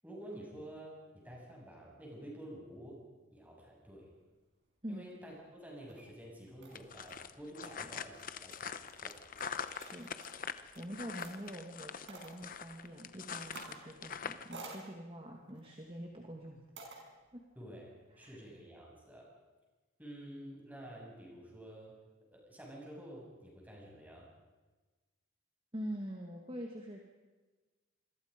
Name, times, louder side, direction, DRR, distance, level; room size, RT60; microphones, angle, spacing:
voice 1, 0.0-3.0 3.3-4.1 4.9-9.2 17.6-19.3 20.0-22.0 22.3-24.3, right 1 dB, 10° right, -2 dB, 7.2 m, -50 dB
sound 1, 5.6-6.0 6.6-11.5 12.1-12.4 13.4-13.9 14.2-14.8 15.5-15.8 16.7-17.0, right 3 dB, 60° right, 5.8 m, -52 dB
sound 2, 6.7-14.5, left 7 dB, 40° left, 0.9 m, -43 dB
voice 2, 9.6-10.1 10.7-16.6 17.3-17.4 18.1-18.4 25.7-27.0, equal, 25° right, 1 dB, 2.1 m, -45 dB
27.0 x 22.5 x 5.3 m, 1.2 s
head